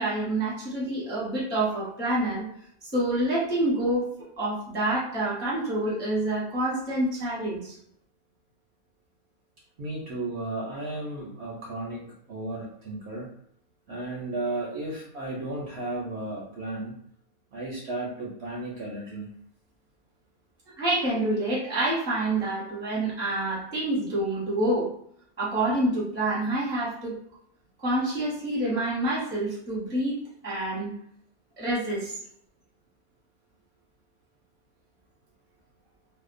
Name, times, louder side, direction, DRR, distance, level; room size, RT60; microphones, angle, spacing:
voice 1, 0.0-2.5 2.8-7.7 20.8-24.9 25.4-27.2 27.8-30.9 31.6-32.2, right 1 dB, 10° left, -7 dB, 0.5 m, -27 dB
voice 2, 9.8-13.3 13.9-17.0 17.5-19.3, right 2 dB, 65° right, -4 dB, 0.7 m, -34 dB
2.7 x 2.0 x 2.5 m, 0.67 s
omnidirectional pair, 1.6 m